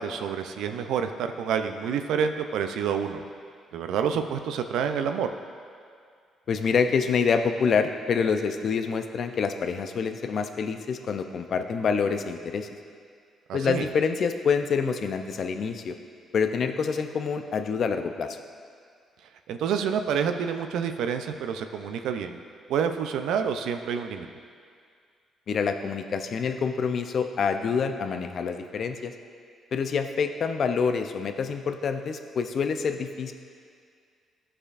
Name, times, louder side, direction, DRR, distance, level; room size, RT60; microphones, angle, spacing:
voice 1, 0.0-3.2 3.7-5.3 13.5-13.9 19.5-22.4 22.7-24.3, right 7 dB, 85° right, 7 dB, 0.4 m, -28 dB
voice 2, 6.5-12.7 13.5-15.9 16.3-18.4 25.5-29.1 29.7-33.3, left 5 dB, 55° left, 7 dB, 0.5 m, -26 dB
13.0 x 4.9 x 2.5 m, 2.2 s
cardioid pair, 90°, 0 cm